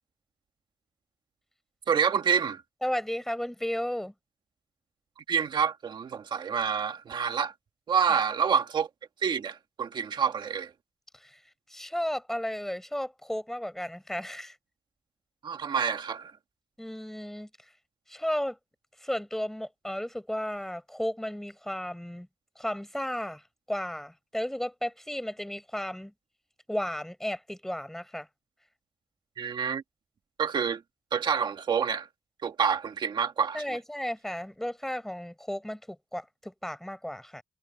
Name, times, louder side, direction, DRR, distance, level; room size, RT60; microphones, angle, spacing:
voice 1, 1.9-2.6 5.3-7.5 7.9-8.9 9.2-10.7 15.4-16.3 29.4-29.8 30.4-30.8 31.1-32.1 32.4-33.6, right 7 dB, 50° right, 1.7 m, -27 dB
voice 2, 2.8-4.1 8.1-8.2 11.1-11.4 11.7-14.6 16.8-17.5 18.1-18.6 19.0-22.3 22.6-26.1 26.7-28.3 33.5-37.4, equal, 5° left, 5.3 m, -34 dB
wide cardioid pair, 155°, 10 cm